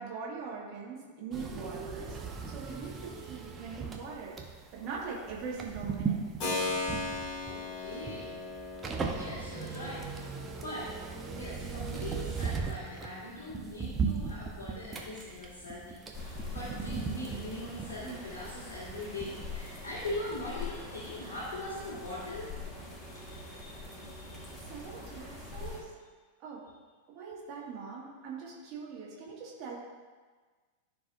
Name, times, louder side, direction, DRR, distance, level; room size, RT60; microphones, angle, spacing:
voice 1, 0.0-2.2 2.5-4.4 4.7-6.2 24.6-25.9 26.4-26.7 27.1-29.8, right 5 dB, 40° right, -4 dB, 1.9 m, -42 dB
sound 1, 1.3-19.9 20.2-20.3, right 5 dB, 20° right, 0.9 m, -38 dB
Keyboard (musical), 6.4-15.0, left 3 dB, 35° left, 2.3 m, -40 dB
voice 2, 7.4-8.5 9.1-10.9 11.3-22.5 23.1-24.4, left 1 dB, 60° left, -8 dB, 2.0 m, -41 dB
sound 2, 16.1-25.8, left 3 dB, 20° left, 1.6 m, -44 dB
14.0 x 4.7 x 2.6 m, 1.4 s
figure-of-eight pair, 90°, 0 cm